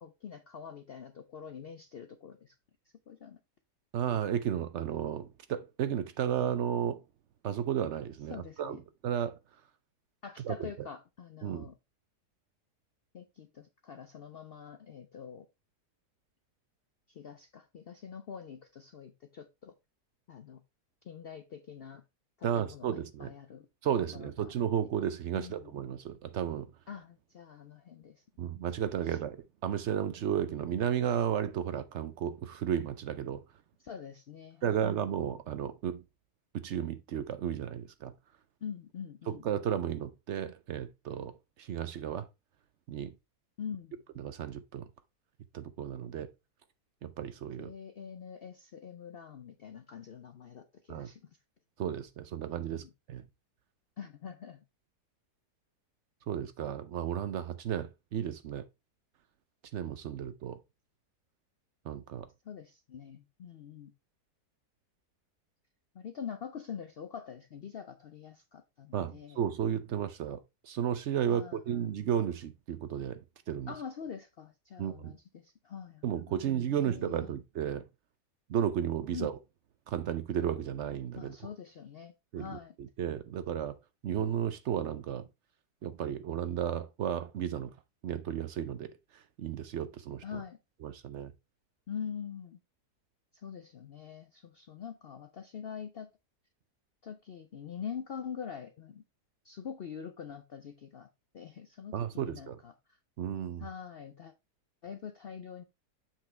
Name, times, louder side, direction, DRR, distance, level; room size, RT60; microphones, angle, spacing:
voice 1, 0.0-2.6 3.1-3.4 8.3-8.8 10.2-11.7 13.1-15.5 17.1-19.7 20.3-20.6 21.0-22.0 22.4-23.7 24.1-24.5 25.3-25.7 26.9-28.2 29.0-29.2 33.8-34.9 38.6-39.4 43.6-44.0 47.6-51.2 52.7-52.9 54.0-54.6 62.4-63.9 65.9-69.4 71.2-71.9 73.7-77.3 79.1-79.3 81.2-82.8 90.2-90.6 91.9-92.6 93.3-96.1 97.0-99.0 99.4-101.1 101.3-103.0 103.6-104.3 104.8-105.6, left 7 dB, 70° left, 0.5 m, -44 dB
voice 2, 3.9-7.0 7.4-8.8 9.0-9.4 10.4-10.5 11.4-11.7 22.4-23.3 23.8-26.7 28.4-33.4 34.6-36.0 36.5-38.1 39.3-42.3 42.9-43.1 44.2-44.9 45.5-46.3 47.0-47.7 50.9-51.1 51.8-53.2 56.3-58.7 59.7-60.6 61.9-62.3 68.9-73.2 73.5-73.7 74.8-75.1 76.0-77.8 78.5-79.4 79.9-81.4 82.3-83.8 84.0-85.3 85.8-87.7 88.0-90.4 90.8-91.3 101.9-102.6 103.2-103.7, right 9 dB, 65° right, 0.7 m, -33 dB
7.3 x 5.9 x 3.3 m
omnidirectional pair, 1.7 m